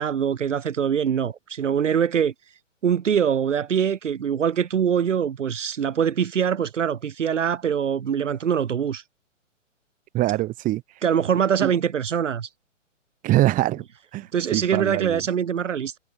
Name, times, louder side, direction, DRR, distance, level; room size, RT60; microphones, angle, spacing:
voice 1, 0.0-2.3 2.8-9.0 11.0-12.5 14.3-16.0, right 8 dB, 70° right, 2.0 m, -23 dB
voice 2, 10.1-10.8 11.6-11.7 13.2-13.8 14.1-15.2, right 16 dB, 20° right, 7.2 m, -23 dB
hypercardioid pair, 145°, 38 cm